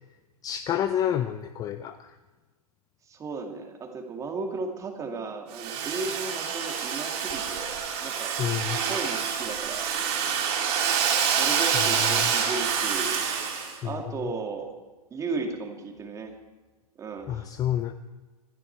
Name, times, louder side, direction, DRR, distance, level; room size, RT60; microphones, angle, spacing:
voice 1, 0.4-2.1 8.4-8.8 12.2-12.3 13.8-14.0 17.3-17.9, left 10 dB, 20° left, 11 dB, 0.5 m, -29 dB
voice 2, 3.1-8.3 8.9-9.9 11.2-13.2 13.8-14.7 15.1-16.4 17.0-17.5, right 4 dB, 15° right, 3 dB, 2.4 m, -35 dB
Domestic sounds home sounds, 5.5-13.7, right 7 dB, 40° right, 4.3 m, -27 dB
26.5 x 11.0 x 4.7 m, 1.3 s
hypercardioid pair, 130°, 20 cm